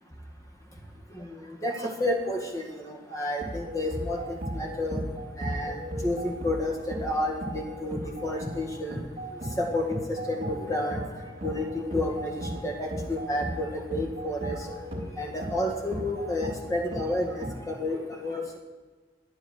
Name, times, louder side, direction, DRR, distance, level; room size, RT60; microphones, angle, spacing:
voice 1, 1.6-5.0 5.4-9.0 9.6-11.0 11.4-14.6 15.2-18.6, left 1 dB, 20° left, 1 dB, 2.1 m, -31 dB
sound 1, 3.4-17.6, equal, 30° right, 3.3 m, -36 dB
12.5 x 9.8 x 6.6 m, 1.4 s
head